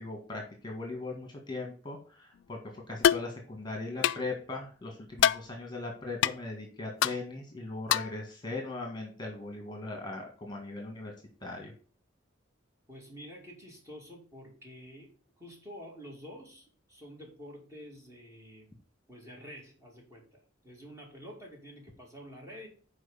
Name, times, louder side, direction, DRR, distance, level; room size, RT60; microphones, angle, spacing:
voice 1, 0.0-11.1 11.4-11.7, left 2 dB, 25° left, 1 dB, 1.7 m, -39 dB
sound 1, 3.0-3.3 4.0-4.2 5.2-5.4 6.2-6.3 7.0-7.2 7.9-8.2, left 10 dB, 70° left, 0.3 m, -24 dB
voice 2, 12.9-15.1 15.4-18.8 19.1-22.7, equal, 15° right, -1 dB, 2.6 m, -48 dB
6.3 x 4.9 x 6.8 m, 0.39 s
head